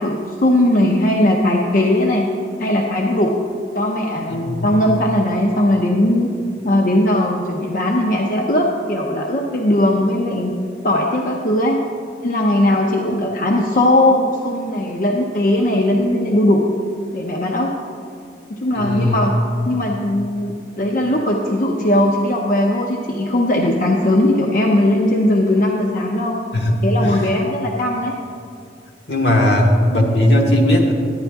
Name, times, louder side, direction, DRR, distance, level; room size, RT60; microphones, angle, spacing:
voice 1, 0.0-2.3 2.6-3.3 3.7-6.3 6.6-10.5 10.8-11.8 12.2-16.7 17.1-17.7 18.5-19.3 19.6-26.4 26.8-28.1, left 1 dB, 50° left, 0 dB, 0.6 m, -18 dB
voice 2, 4.3-4.7 18.7-19.2 26.5-27.3 29.1-30.9, left 1 dB, 70° left, 0 dB, 1.3 m, -17 dB
10.5 x 10.0 x 3.5 m, 2.3 s
head